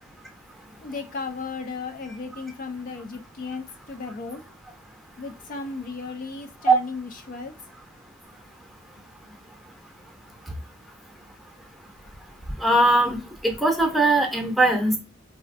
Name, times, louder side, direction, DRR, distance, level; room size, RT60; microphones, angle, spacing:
voice 1, 0.8-4.4 5.2-7.5, left 4 dB, 45° left, 6 dB, 0.4 m, -35 dB
voice 2, 12.6-13.2 13.4-15.0, right 2 dB, ahead, 2 dB, 0.7 m, -19 dB
4.1 x 2.4 x 2.5 m, 0.29 s
head